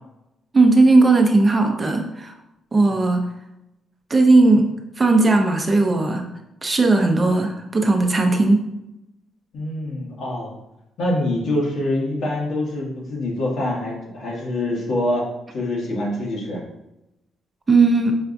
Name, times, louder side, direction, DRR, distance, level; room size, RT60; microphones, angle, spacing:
voice 1, 0.5-2.3 2.7-3.3 4.1-4.7 5.0-6.3 6.6-8.6 17.7-18.1, right 3 dB, 25° right, 3 dB, 0.5 m, -16 dB
voice 2, 9.5-10.5 11.0-15.3 15.5-16.6, left 1 dB, 70° left, -3 dB, 1.3 m, -25 dB
5.5 x 2.3 x 2.6 m, 0.89 s
cardioid pair, 90°, 0 cm